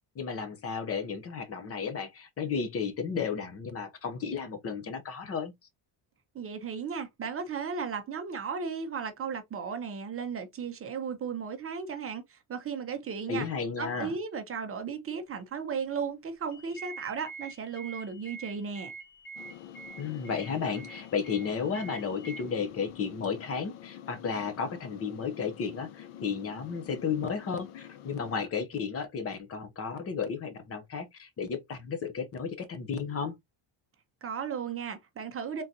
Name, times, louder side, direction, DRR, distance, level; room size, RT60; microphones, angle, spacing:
voice 1, 0.1-5.5 13.3-14.1 20.0-33.4, left 6 dB, 30° left, 0.8 m, -33 dB
voice 2, 6.3-13.5 13.8-18.9 34.2-35.6, right 6 dB, 30° right, 0.7 m, -35 dB
sound 1, 16.5-22.4, right 4 dB, 45° left, 1.5 m, -46 dB
sound 2, 19.4-28.5, left 11 dB, 85° left, 0.8 m, -47 dB
3.9 x 3.8 x 2.7 m
cardioid pair, 170°, 49 cm